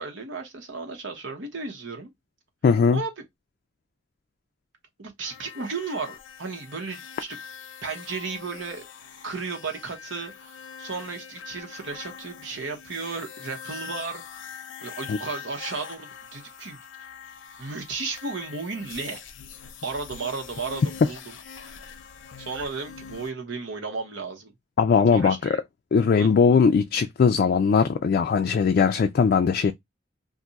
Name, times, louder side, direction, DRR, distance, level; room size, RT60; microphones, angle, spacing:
voice 1, 0.0-2.1 2.9-3.1 5.0-7.4 7.8-8.8 9.2-17.1 17.6-19.2 19.8-21.3 22.4-24.5 25.1-25.6 26.2-26.3, right 4 dB, 80° right, 1.0 m, -34 dB
voice 2, 2.6-3.0 15.1-15.2 24.8-25.6 25.9-29.7, left 5 dB, 50° left, 0.3 m, -20 dB
sound 1, 5.2-23.3, left 7 dB, 90° left, 0.6 m, -43 dB
2.6 x 2.3 x 3.9 m
head